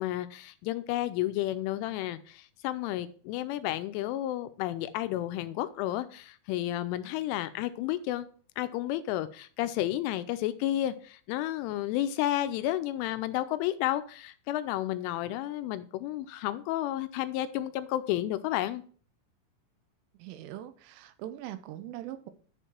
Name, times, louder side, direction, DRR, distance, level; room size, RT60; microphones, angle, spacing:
voice 1, 0.0-8.3 8.6-18.8, left 14 dB, 85° left, 11 dB, 3.0 m, -31 dB
voice 2, 20.2-22.3, right 13 dB, 85° right, 11 dB, 3.2 m, -41 dB
11.0 x 4.6 x 4.4 m, 0.44 s
omnidirectional pair, 5.7 m